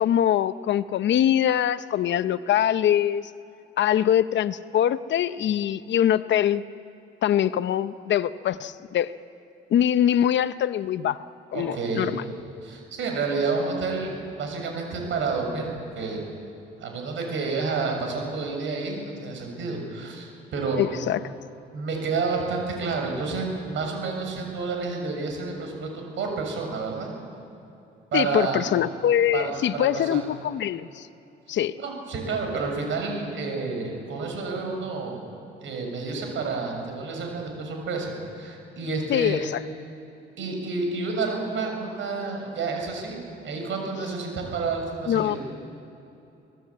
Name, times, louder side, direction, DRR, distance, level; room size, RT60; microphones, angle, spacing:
voice 1, 0.0-3.3 3.8-6.6 7.2-9.1 9.7-11.2 11.5-12.2 20.8-21.2 28.1-31.1 31.5-31.8 39.1-39.6 45.1-45.4, left 10 dB, 65° left, 14 dB, 0.8 m, -23 dB
voice 2, 11.5-12.2 12.6-15.7 15.9-16.2 16.8-20.8 21.7-27.1 28.1-28.7 29.3-30.2 31.8-35.2 35.6-39.4 40.4-45.4, right 4 dB, 75° right, 2 dB, 6.7 m, -29 dB
25.0 x 18.0 x 8.6 m, 2.8 s
cardioid pair, 90°, 20 cm